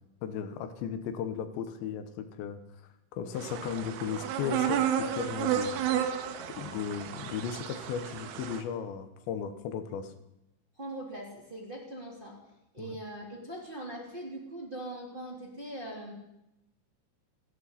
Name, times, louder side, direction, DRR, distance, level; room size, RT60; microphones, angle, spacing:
voice 1, 0.2-2.6 3.1-5.8 6.6-10.1 12.8-13.0, left 7 dB, 70° left, 9 dB, 3.0 m, -36 dB
sound 1, 3.4-8.6, right 9 dB, 85° right, 3.9 m, -32 dB
voice 2, 10.8-12.4 12.7-16.1, right 1 dB, 15° right, -4 dB, 2.6 m, -41 dB
29.5 x 10.5 x 4.2 m, 0.87 s
omnidirectional pair, 5.9 m